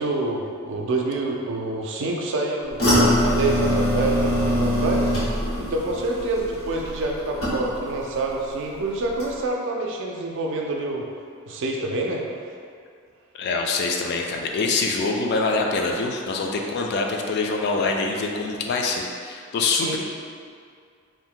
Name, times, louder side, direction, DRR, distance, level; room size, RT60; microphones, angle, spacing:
voice 1, 0.0-2.8 3.2-5.1 5.6-11.1 11.5-12.2 19.7-20.0, right 2 dB, 60° right, 0 dB, 0.4 m, -27 dB
sound 1, 2.8-8.0 8.3-8.8 9.2-9.3, equal, 70° left, 1.0 m, -23 dB
voice 2, 13.4-20.0, left 3 dB, 50° left, 1 dB, 0.3 m, -25 dB
2.6 x 2.1 x 3.7 m, 2.2 s
head